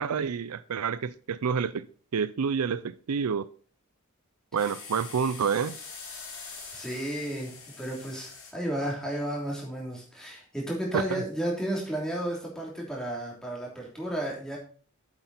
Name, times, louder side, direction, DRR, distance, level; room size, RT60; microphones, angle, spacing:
voice 1, 0.0-1.9 2.1-3.5 4.5-5.8 10.9-11.2, right 6 dB, 90° right, 0.5 m, -28 dB
sound 1, 4.6-8.5, left 4 dB, 65° left, 3.1 m, -44 dB
voice 2, 6.7-14.6, right 1 dB, 5° left, 3.2 m, -33 dB
8.0 x 8.0 x 4.2 m
head